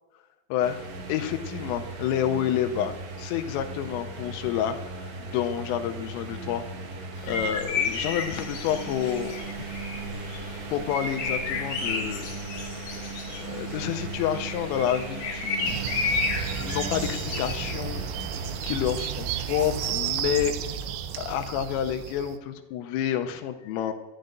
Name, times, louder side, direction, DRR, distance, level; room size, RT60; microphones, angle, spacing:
sound 1, 0.6-19.9, right 3 dB, 65° right, 3.2 m, -38 dB
voice 1, 1.1-6.6 7.2-9.5 10.7-12.3 13.4-15.8 16.2-18.0 18.6-20.5 21.2-23.9, left 10 dB, 85° left, 7 dB, 3.2 m, -29 dB
sound 2, 7.2-18.8, left 4 dB, 65° left, 2.2 m, -33 dB
sound 3, 15.6-22.4, right 9 dB, 85° right, 2.5 m, -32 dB
13.5 x 10.5 x 2.6 m, 1.2 s
omnidirectional pair, 5.9 m